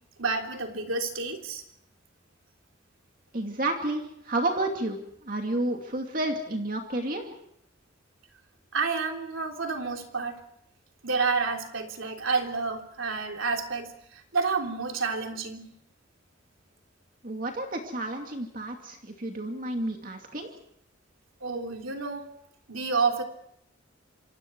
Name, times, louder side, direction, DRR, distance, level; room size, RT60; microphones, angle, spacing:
voice 1, 0.2-1.6 8.7-10.4 11.0-15.7 21.4-22.3 22.7-23.2, right 4 dB, 85° right, 3 dB, 3.5 m, -29 dB
voice 2, 3.3-7.3 17.2-20.5, right 1 dB, 40° right, 3 dB, 2.5 m, -31 dB
28.0 x 26.0 x 4.7 m, 0.73 s
head